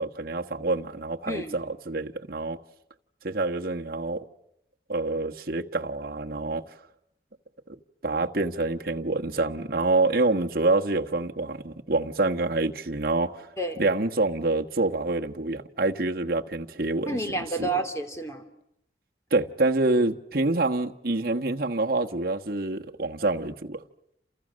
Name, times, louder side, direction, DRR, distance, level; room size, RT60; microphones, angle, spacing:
voice 1, 0.0-2.6 3.2-4.2 4.9-6.7 8.0-13.5 13.8-17.2 17.6-17.7 19.3-23.8, right 2 dB, 55° right, 1.4 m, -26 dB
voice 2, 1.3-1.6 13.6-13.8 17.1-18.5, right 2 dB, 15° left, 3.0 m, -30 dB
29.5 x 28.0 x 6.4 m
head